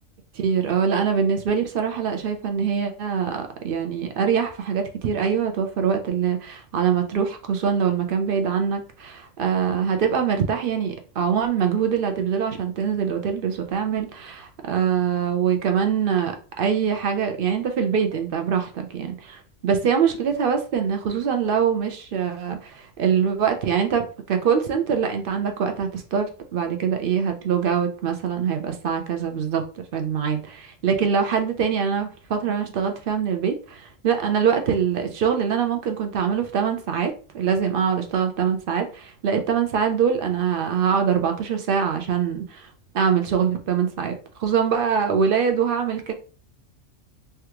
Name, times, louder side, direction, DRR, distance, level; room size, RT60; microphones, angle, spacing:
voice 1, 0.3-29.6 29.9-42.7 42.9-44.1 44.4-46.1, right 7 dB, 60° right, 0.6 m, -23 dB
3.4 x 2.3 x 2.9 m
omnidirectional pair, 1.3 m